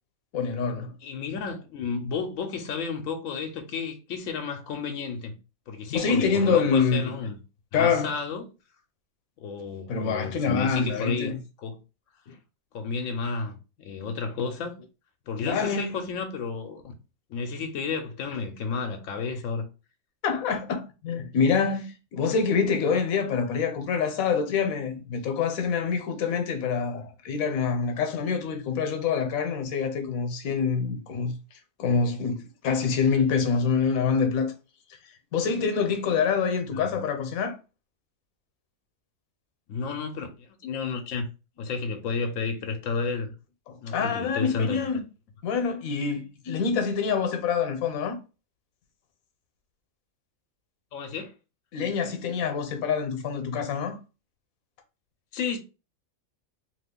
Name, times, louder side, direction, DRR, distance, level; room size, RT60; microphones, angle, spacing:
voice 1, 0.3-0.9 5.9-7.1 7.7-8.2 9.9-11.4 12.3-12.4 15.4-16.0 20.2-31.3 31.8-34.5 35.3-37.6 43.7-45.0 45.4-48.2 51.7-54.0, left 5 dB, 90° left, 1.1 m, -26 dB
voice 2, 1.0-5.4 5.7-7.4 7.7-8.4 9.4-11.8 12.7-14.8 15.3-16.8 17.3-19.7 36.7-37.0 39.7-41.3 41.6-43.3 43.8-44.9 50.9-51.3 55.3-55.6, left 5 dB, 75° left, 1.0 m, -32 dB
2.8 x 2.4 x 3.5 m
omnidirectional pair, 1.4 m